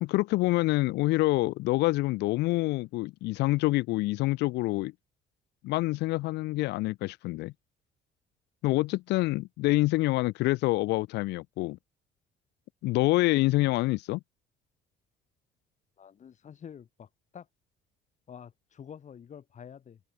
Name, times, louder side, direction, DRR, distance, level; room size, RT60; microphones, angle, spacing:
voice 1, 0.0-4.9 5.6-7.5 8.6-11.8 12.8-14.2, left 20 dB, 85° left, 1.5 m, -26 dB
voice 2, 16.0-17.5 18.3-20.0, left 8 dB, 45° left, 6.5 m, -48 dB
cardioid pair, 110°, 17 cm